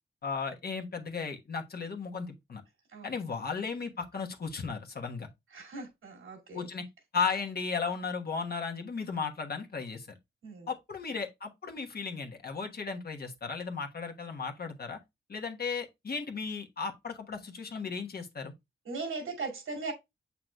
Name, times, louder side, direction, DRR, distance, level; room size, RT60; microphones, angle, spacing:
voice 1, 0.2-2.6 3.0-5.3 6.5-6.8 7.1-10.1 10.7-15.0 15.3-18.5, left 5 dB, 50° left, 1.2 m, -35 dB
voice 2, 5.5-6.7 10.4-10.7 18.9-19.9, right 3 dB, 85° right, 2.5 m, -38 dB
7.8 x 5.7 x 2.3 m
wide cardioid pair, 125°, 20 cm